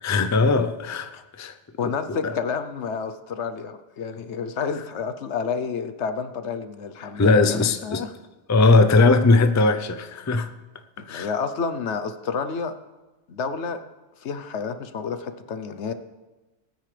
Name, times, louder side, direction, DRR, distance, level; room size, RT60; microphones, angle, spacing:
voice 1, 0.0-1.5 1.8-2.3 7.0-8.1 8.5-10.5 11.1-11.3, left 3 dB, 20° left, 0.4 m, -20 dB
voice 2, 1.8-8.1 11.0-12.7 13.3-13.8 14.2-15.9, left 5 dB, 70° left, 1.1 m, -30 dB
19.5 x 9.5 x 3.4 m
omnidirectional pair, 1.2 m